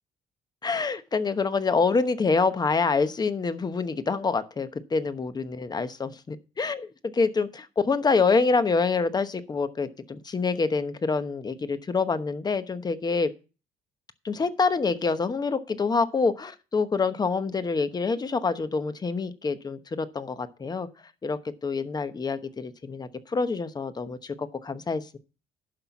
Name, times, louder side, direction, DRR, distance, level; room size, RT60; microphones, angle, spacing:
voice 1, 0.6-6.9 7.1-13.3 14.2-20.9 21.2-25.2, left 4 dB, 25° left, 11 dB, 1.0 m, -26 dB
11.5 x 5.7 x 6.0 m, 0.34 s
cardioid pair, 110°, 17 cm